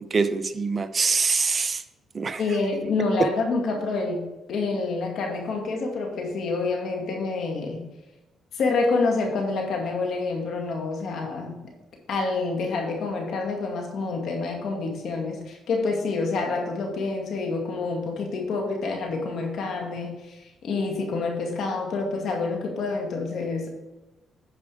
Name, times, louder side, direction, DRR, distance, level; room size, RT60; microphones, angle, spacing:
voice 1, 0.0-1.8 2.1-2.4, right 4 dB, 35° right, 10 dB, 0.7 m, -24 dB
voice 2, 2.4-4.2 4.5-7.8 8.5-11.6 12.1-23.7, left 3 dB, 70° left, 1 dB, 2.2 m, -27 dB
10.0 x 5.0 x 4.9 m, 1.0 s
cardioid pair, 90°, 0 cm